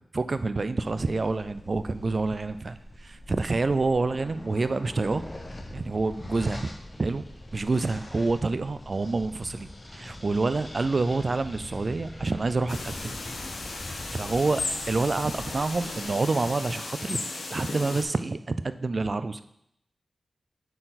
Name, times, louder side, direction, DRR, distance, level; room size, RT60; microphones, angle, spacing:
voice 1, 0.1-5.2 5.7-6.7 7.0-7.3 7.5-13.2 13.9-14.6 14.9-17.2 17.5-19.4, right 3 dB, 40° right, 12 dB, 0.3 m, -27 dB
sound 1, 0.8-16.1, left 1 dB, 25° left, 0.8 m, -43 dB
sound 2, 12.7-18.0, left 3 dB, 90° left, 1.0 m, -35 dB
7.6 x 4.5 x 4.0 m, 0.76 s
wide cardioid pair, 125°, 0 cm